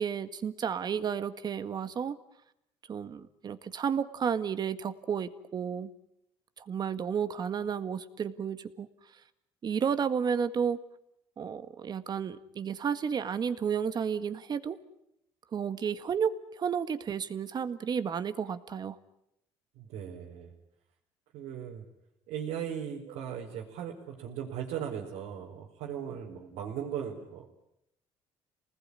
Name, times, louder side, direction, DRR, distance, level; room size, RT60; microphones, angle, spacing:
voice 1, 0.0-2.2 2.9-5.9 6.6-8.9 9.6-10.8 11.4-14.8 15.5-19.0, right 7 dB, 40° right, 11 dB, 1.7 m, -32 dB
voice 2, 19.8-20.5 21.3-21.8 22.3-27.5, right 8 dB, 85° right, -3 dB, 4.4 m, -38 dB
28.5 x 20.0 x 9.8 m, 0.82 s
cardioid pair, 115°, 11 cm